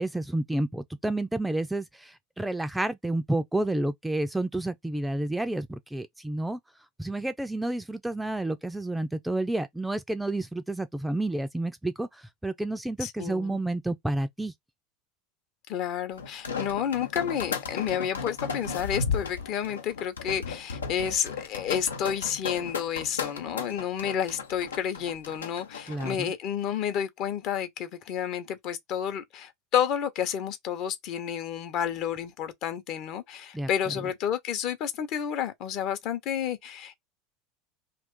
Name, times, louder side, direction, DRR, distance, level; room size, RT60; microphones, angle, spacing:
voice 1, 0.0-6.6 7.0-14.5 25.9-26.3 33.5-33.7, right 2 dB, 5° right, 0.4 m, -30 dB
voice 2, 13.0-13.6 15.7-37.0, left 9 dB, 55° left, 0.8 m, -30 dB
sound 1, 16.2-26.2, left 5 dB, 90° left, 0.6 m, -35 dB
sound 2, 16.4-16.8 17.8-18.9 19.1-19.2 20.9-21.0 21.2-21.6, right 4 dB, 90° right, 0.4 m, -47 dB
2.5 x 2.4 x 3.6 m
hypercardioid pair, 85°, 0 cm